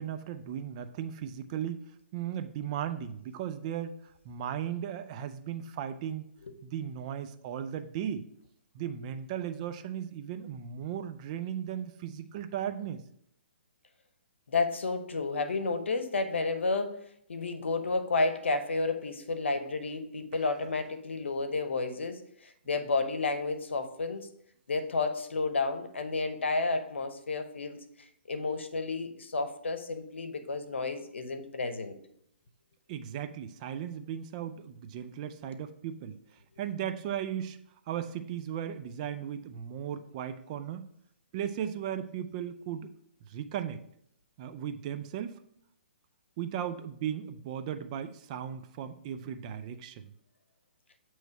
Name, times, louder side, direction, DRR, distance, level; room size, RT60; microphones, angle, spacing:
voice 1, 0.0-1.8 2.1-4.0 4.2-6.3 6.6-8.2 8.7-13.0 32.9-36.2 36.6-37.6 37.9-40.9 41.3-42.9 43.3-43.8 44.4-45.4 46.4-50.1, right 9 dB, 35° right, 10 dB, 0.4 m, -36 dB
voice 2, 14.5-17.0 17.3-24.3 24.7-32.0, left 3 dB, 85° left, 8 dB, 0.8 m, -31 dB
8.0 x 3.1 x 4.5 m, 0.71 s
hypercardioid pair, 145°, 6 cm